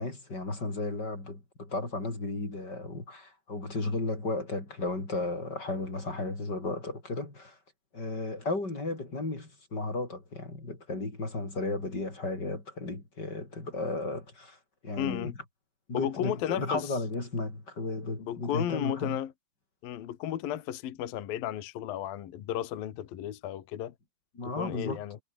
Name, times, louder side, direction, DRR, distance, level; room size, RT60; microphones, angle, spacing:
voice 1, 0.0-7.6 7.9-14.6 14.8-15.3 15.9-19.2 24.3-25.0, left 2 dB, 20° left, 6.0 m, -34 dB
voice 2, 15.0-15.3 15.9-16.9 18.2-19.3 19.8-23.9 24.4-25.2, left 11 dB, 55° left, 3.0 m, -34 dB
omnidirectional pair, 5.8 m